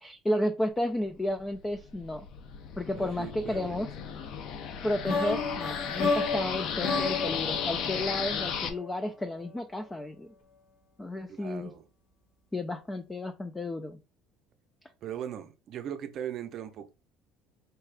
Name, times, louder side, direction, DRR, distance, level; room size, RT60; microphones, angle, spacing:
voice 1, 0.0-2.3 2.8-3.9 4.8-10.3 11.0-11.7 12.5-14.0, left 1 dB, 10° left, 0.3 m, -32 dB
sound 1, 1.4-8.7, left 7 dB, 55° left, 0.6 m, -35 dB
voice 2, 2.9-3.8 11.3-11.8 15.0-16.9, right 9 dB, 45° right, 0.6 m, -39 dB
sound 2, 5.0-9.0, left 4 dB, 85° left, 1.7 m, -32 dB
4.4 x 2.4 x 3.3 m
cardioid pair, 150°, 0 cm